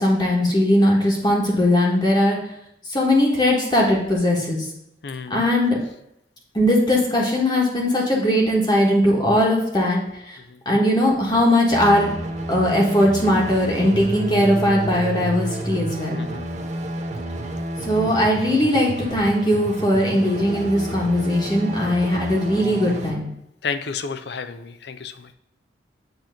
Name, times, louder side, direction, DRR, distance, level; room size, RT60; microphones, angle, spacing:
voice 1, 0.0-2.4 2.9-4.7 5.3-5.8 6.5-10.0 10.2-10.4 10.6-12.1 12.5-16.2 17.8-23.3, left 1 dB, 25° left, -2 dB, 1.3 m, -19 dB
voice 2, 5.0-5.3 10.5-10.6 16.1-16.5 23.6-25.3, left 5 dB, 60° left, 10 dB, 0.5 m, -31 dB
sound 1, 11.7-23.1, right 1 dB, 40° right, 0.7 m, -30 dB
8.0 x 3.0 x 6.3 m, 0.80 s
head